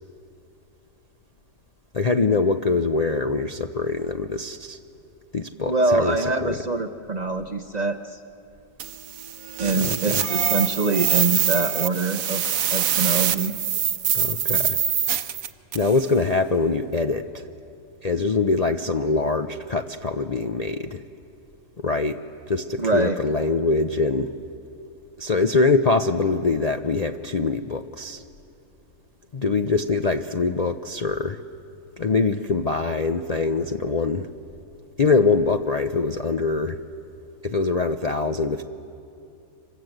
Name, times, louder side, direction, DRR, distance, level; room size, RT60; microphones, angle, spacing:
voice 1, 1.9-4.8 5.3-6.6 9.7-10.2 14.1-14.8 15.7-17.5 18.0-21.0 21.8-22.2 22.5-24.3 25.2-28.2 29.3-31.4 32.0-34.3 35.0-36.8 37.4-38.6, left 3 dB, 90° left, 6 dB, 0.3 m, -23 dB
voice 2, 5.7-8.2 9.6-12.4 12.7-13.6 22.8-23.2, right 3 dB, 40° right, 7 dB, 0.6 m, -24 dB
sound 1, 8.8-16.0, right 9 dB, 60° right, 1.1 m, -24 dB
26.5 x 26.5 x 7.9 m, 2.7 s
omnidirectional pair, 1.8 m